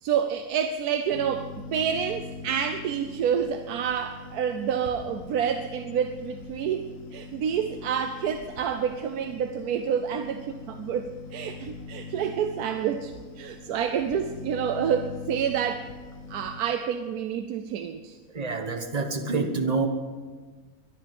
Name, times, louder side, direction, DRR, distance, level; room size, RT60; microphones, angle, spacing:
voice 1, 0.0-15.9 16.3-18.2, right 8 dB, 80° right, 8 dB, 1.2 m, -28 dB
sound 1, 1.1-16.6, left 4 dB, 60° left, 1.5 m, -42 dB
voice 2, 18.3-19.9, right 4 dB, 25° right, 5 dB, 1.3 m, -27 dB
22.5 x 10.5 x 5.3 m, 1.4 s
omnidirectional pair, 1.6 m